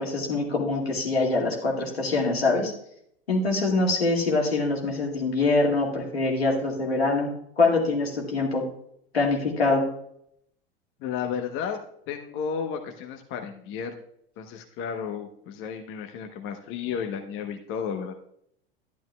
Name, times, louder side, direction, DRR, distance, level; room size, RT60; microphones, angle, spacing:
voice 1, 0.0-2.7 3.3-7.3 7.6-8.6 9.1-9.8, left 3 dB, 85° left, -1 dB, 2.2 m, -24 dB
voice 2, 11.0-11.8 12.1-14.0 14.4-18.1, left 7 dB, 45° left, 4 dB, 1.0 m, -33 dB
12.0 x 10.5 x 2.3 m, 0.71 s
figure-of-eight pair, 85°, 30 cm